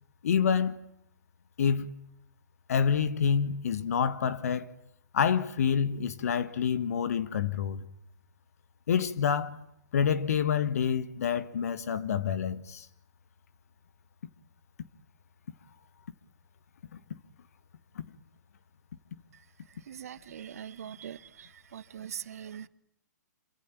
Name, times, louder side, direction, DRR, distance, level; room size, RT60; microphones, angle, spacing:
voice 1, 0.2-0.8 1.6-1.9 2.7-4.7 5.1-7.9 8.9-9.6 9.9-12.8 17.9-18.0, left 7 dB, 55° left, 1.8 m, -27 dB
voice 2, 19.9-21.2 21.7-22.7, right 9 dB, 55° right, 1.2 m, -41 dB
27.5 x 24.5 x 8.9 m
figure-of-eight pair, 120°, 10 cm